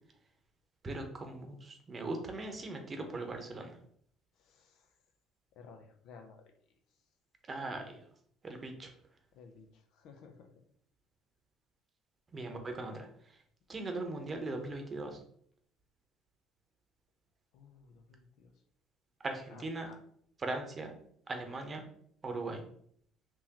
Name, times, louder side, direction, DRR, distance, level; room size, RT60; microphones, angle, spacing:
voice 1, 0.8-3.8 7.5-8.0 8.4-8.9 12.3-13.4 13.7-15.2 19.2-19.9 20.4-20.9 21.3-21.8 22.2-22.6, right 2 dB, 35° right, 4 dB, 0.8 m, -39 dB
voice 2, 4.3-4.9 5.5-6.8 9.3-10.5 17.5-18.5 19.5-20.0, left 5 dB, 70° left, 5 dB, 0.5 m, -56 dB
3.6 x 3.0 x 2.9 m, 0.64 s
supercardioid pair, 75°, 0 cm